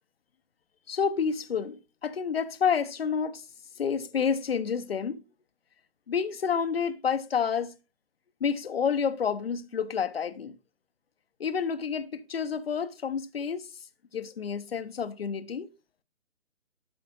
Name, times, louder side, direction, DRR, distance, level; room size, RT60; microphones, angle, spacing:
voice 1, 0.9-3.4 3.8-5.2 6.1-7.7 8.4-10.5 11.4-13.7 14.1-15.7, left 6 dB, 55° left, 1.0 m, -29 dB
12.5 x 5.1 x 3.8 m
figure-of-eight pair, 140°, 37 cm